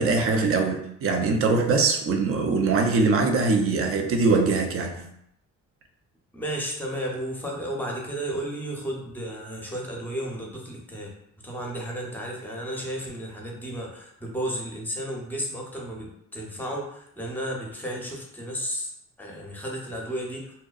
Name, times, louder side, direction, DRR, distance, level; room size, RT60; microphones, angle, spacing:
voice 1, 0.0-5.0, right 3 dB, 45° right, 4 dB, 0.5 m, -22 dB
voice 2, 6.3-11.1 11.4-18.9 19.2-20.5, right 1 dB, 5° left, -1 dB, 0.6 m, -33 dB
2.6 x 2.1 x 2.3 m, 0.73 s
cardioid pair, 90°, 30 cm